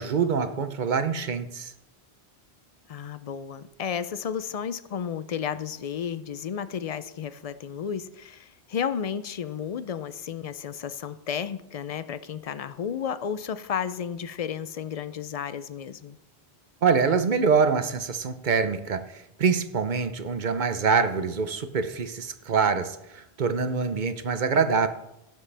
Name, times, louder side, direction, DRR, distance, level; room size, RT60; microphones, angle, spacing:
voice 1, 0.0-1.7 16.8-19.0 19.4-24.9, right 5 dB, 50° right, 10 dB, 0.8 m, -25 dB
voice 2, 2.9-16.2, left 8 dB, 60° left, 14 dB, 0.4 m, -32 dB
17.5 x 7.5 x 3.3 m, 0.88 s
omnidirectional pair, 1.1 m